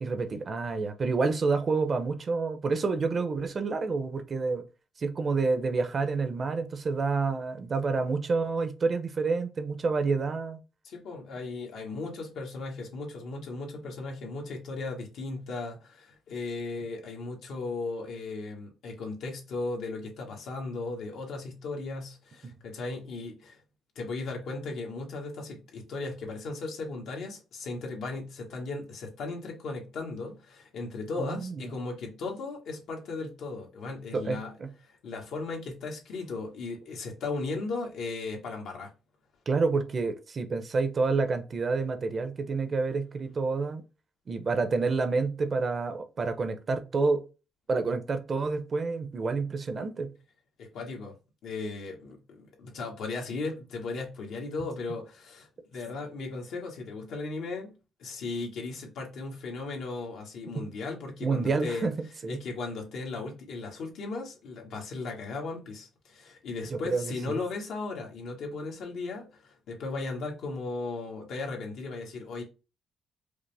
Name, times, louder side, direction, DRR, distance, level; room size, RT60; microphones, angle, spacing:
voice 1, 0.0-4.6 5.0-10.6 31.2-31.7 34.1-34.7 39.5-43.8 44.3-47.2 47.7-50.1 61.2-62.4 66.7-67.4, right 4 dB, 40° right, 0.7 m, -28 dB
voice 2, 10.8-23.6 23.9-34.5 34.9-38.9 50.6-51.2 51.4-57.7 58.0-61.9 62.3-72.4, left 3 dB, 75° left, 1.3 m, -36 dB
5.0 x 2.0 x 3.3 m
cardioid pair, 90°, 0 cm